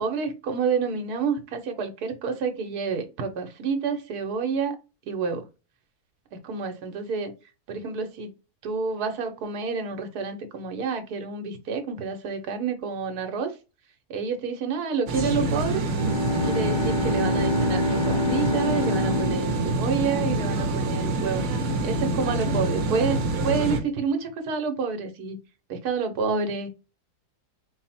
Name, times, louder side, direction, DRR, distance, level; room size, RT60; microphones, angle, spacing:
voice 1, 0.0-4.8 5.1-5.5 6.4-7.3 7.7-8.3 8.6-13.5 14.1-15.8 16.4-25.4 25.7-26.7, right 5 dB, 85° right, 1.3 m, -29 dB
sound 1, 15.1-23.8, right 2 dB, 65° right, 1.1 m, -26 dB
Bowed string instrument, 15.9-20.9, left 2 dB, 50° left, 0.6 m, -27 dB
4.2 x 2.0 x 4.1 m
omnidirectional pair, 1.6 m